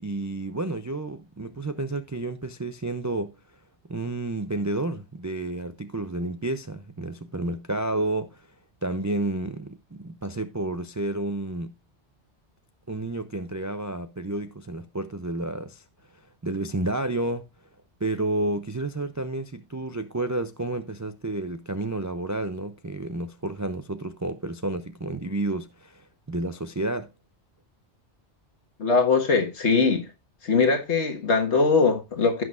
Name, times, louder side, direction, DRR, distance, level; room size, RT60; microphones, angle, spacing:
voice 1, 0.0-3.4 3.9-8.5 8.8-11.7 12.9-15.8 16.4-17.5 18.0-27.1, right 2 dB, 30° right, 0.3 m, -30 dB
voice 2, 28.8-30.1 30.4-32.4, left 4 dB, 75° left, 1.8 m, -21 dB
16.0 x 6.1 x 2.4 m
omnidirectional pair, 1.2 m